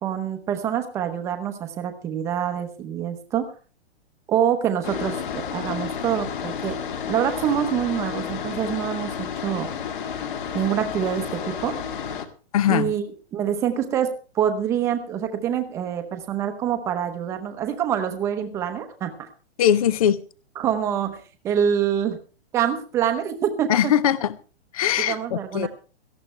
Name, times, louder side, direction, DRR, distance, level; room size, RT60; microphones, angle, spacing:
voice 1, 0.0-3.5 4.3-6.8 7.1-9.7 10.5-11.8 12.7-19.3 20.6-21.2 21.4-22.2 22.5-23.9 25.1-25.7, right 9 dB, 10° right, 5 dB, 0.8 m, -26 dB
sound 1, 4.8-12.3, left 7 dB, 50° left, 1.9 m, -31 dB
voice 2, 12.5-12.9 19.6-20.2 23.7-24.3 24.7-25.7, left 10 dB, 35° left, 18 dB, 0.6 m, -21 dB
18.0 x 14.0 x 3.3 m, 0.37 s
hypercardioid pair, 175°, 33 cm